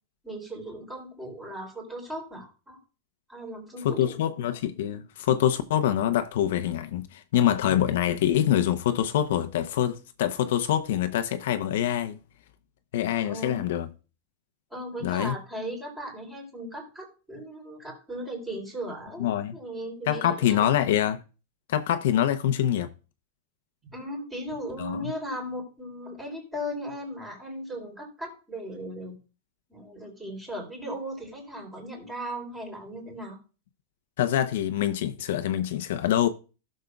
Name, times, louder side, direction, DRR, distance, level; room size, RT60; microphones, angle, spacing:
voice 1, 0.2-2.8 3.3-4.2 13.2-13.6 14.7-20.7 23.9-29.1 29.7-33.4, equal, 10° right, 3.2 m, -37 dB
voice 2, 3.8-12.2 12.9-13.9 15.0-15.4 19.2-19.5 20.1-21.2 21.7-22.9 24.8-25.1 34.2-36.3, left 11 dB, 65° left, 0.7 m, -25 dB
16.0 x 6.4 x 2.3 m
supercardioid pair, 160°, 0 cm